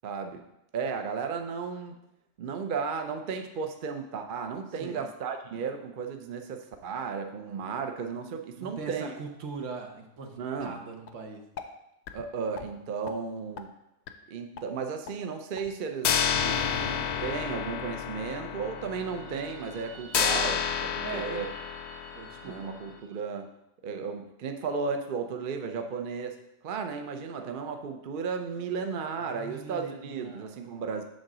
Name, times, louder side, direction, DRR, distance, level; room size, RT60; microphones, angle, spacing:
voice 1, 0.0-0.4 0.7-2.0 2.4-9.1 10.4-10.8 12.1-13.7 14.3-16.1 17.2-21.5 22.4-23.5 23.8-26.4 26.6-31.0, right 5 dB, 50° right, 5 dB, 0.7 m, -34 dB
voice 2, 8.6-11.4 21.0-21.4 22.1-22.7 29.2-30.6, right 4 dB, 70° right, 3 dB, 1.3 m, -41 dB
sound 1, 11.1-11.2 11.6-11.7 12.1-12.2 12.6-12.7 13.1-13.2 13.6-13.7 14.1-14.2 14.6-14.7 15.1-15.2 15.6-15.7 16.0-22.7, left 7 dB, 65° left, 0.8 m, -31 dB
sound 2, 16.3-18.3 18.6-22.9, equal, 35° right, 1.1 m, -44 dB
7.6 x 3.7 x 6.0 m, 0.87 s
omnidirectional pair, 1.3 m